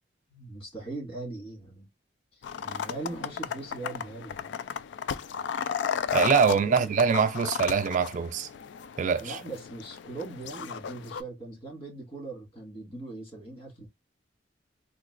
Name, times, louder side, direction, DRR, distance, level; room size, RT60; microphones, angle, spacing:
voice 1, 0.3-1.9 2.3-4.5 6.7-7.0 9.2-13.9, right 2 dB, 30° left, 1.9 m, -40 dB
sound 1, 2.4-11.2, left 7 dB, 80° left, 0.3 m, -34 dB
voice 2, 6.1-8.5 9.0-9.4, right 6 dB, 45° right, 0.3 m, -24 dB
3.7 x 2.4 x 2.4 m
head